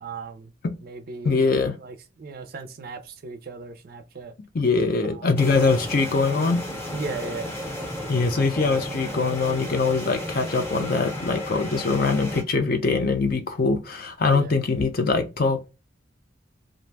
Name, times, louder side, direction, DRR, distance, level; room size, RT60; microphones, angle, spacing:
voice 1, 0.0-0.5 0.8-1.5 1.7-4.3 5.0-5.3 6.9-7.5 8.6-8.9 14.2-14.5, right 4 dB, 50° right, 0.4 m, -36 dB
voice 2, 1.2-1.8 4.5-6.6 8.1-15.7, left 4 dB, 50° left, 0.5 m, -23 dB
sound 1, 5.4-12.4, equal, 15° left, 0.7 m, -33 dB
2.5 x 2.2 x 3.2 m
head